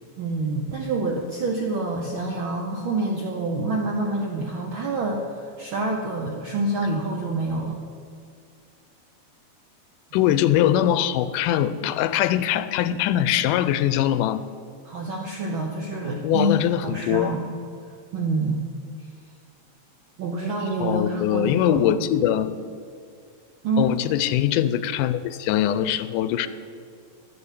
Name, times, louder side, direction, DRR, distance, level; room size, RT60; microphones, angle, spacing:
voice 1, 0.2-7.8 14.8-17.5 18.1-18.6 20.2-21.9 23.6-24.0, right 2 dB, 85° right, 1 dB, 1.1 m, -27 dB
voice 2, 10.1-14.4 16.2-17.3 20.8-22.5 23.8-26.5, left 11 dB, 90° left, 13 dB, 2.2 m, -22 dB
12.5 x 7.1 x 8.3 m, 2.3 s
omnidirectional pair, 3.6 m